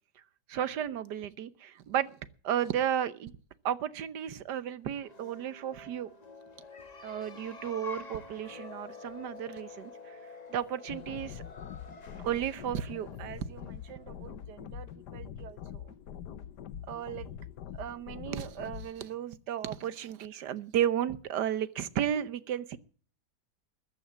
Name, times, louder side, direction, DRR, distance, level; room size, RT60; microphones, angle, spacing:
voice 1, 0.5-2.1 2.4-3.3 3.6-6.1 7.0-10.2 10.5-11.4 12.2-15.9 16.9-17.3 17.7-22.8, right 10 dB, 75° right, 1.5 m, -34 dB
sound 1, 4.9-14.4, left 3 dB, 30° left, 1.0 m, -48 dB
sound 2, 10.9-18.9, left 9 dB, 75° left, 1.5 m, -44 dB
14.5 x 9.1 x 7.3 m
omnidirectional pair, 1.8 m